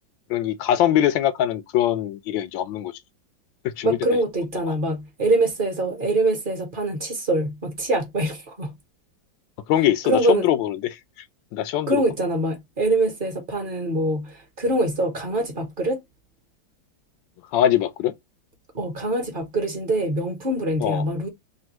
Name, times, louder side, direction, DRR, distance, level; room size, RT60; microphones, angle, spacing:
voice 1, 0.3-2.9 3.6-4.0 4.7-4.8 9.7-11.0 11.5-12.0 17.5-18.1 20.8-21.0, left 11 dB, 90° left, 1.3 m, -22 dB
voice 2, 3.8-8.7 10.0-10.5 11.9-16.0 18.7-21.3, right 2 dB, 40° right, 0.8 m, -24 dB
3.6 x 2.3 x 2.9 m
omnidirectional pair, 2.1 m